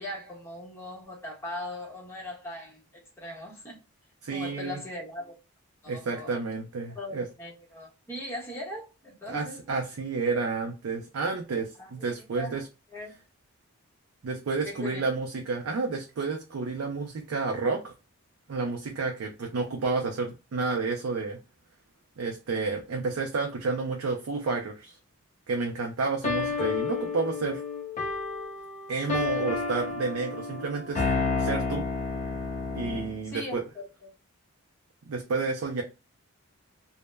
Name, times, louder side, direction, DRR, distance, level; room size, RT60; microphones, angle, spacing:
voice 1, 0.0-3.8 4.3-5.3 5.8-6.4 6.9-9.6 11.8-12.6 12.9-13.1 14.6-15.2 33.2-34.1, left 1 dB, 10° left, 0.8 m, -40 dB
voice 2, 4.2-4.8 5.9-7.3 9.3-12.7 14.2-17.9 18.5-21.4 22.2-25.0 25.5-27.6 28.9-31.0 31.4-31.8 32.7-33.6 35.0-35.8, right 4 dB, 70° right, 0.4 m, -30 dB
sound 1, 26.2-33.2, left 4 dB, 30° left, 0.3 m, -30 dB
2.1 x 2.0 x 3.2 m
head